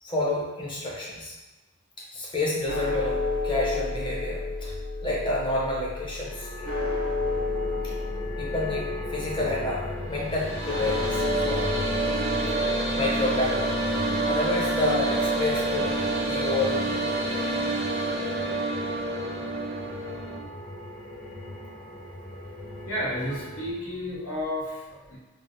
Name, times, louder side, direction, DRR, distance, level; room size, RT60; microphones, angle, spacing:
voice 1, 0.0-1.3 2.1-4.7 5.0-6.7 7.8-7.9 8.4-11.8 12.9-13.6 14.0-15.9 16.2-17.1, left 2 dB, 20° left, -5 dB, 0.6 m, -29 dB
sound 1, 2.6-16.9, left 3 dB, 45° left, 1.5 m, -32 dB
sound 2, 5.9-23.7, left 1 dB, 60° left, 1.2 m, -39 dB
sound 3, 10.1-20.4, right 2 dB, 50° right, 0.4 m, -28 dB
voice 2, 22.8-25.2, equal, 75° left, -7 dB, 1.0 m, -32 dB
3.5 x 2.0 x 2.6 m, 1.2 s
head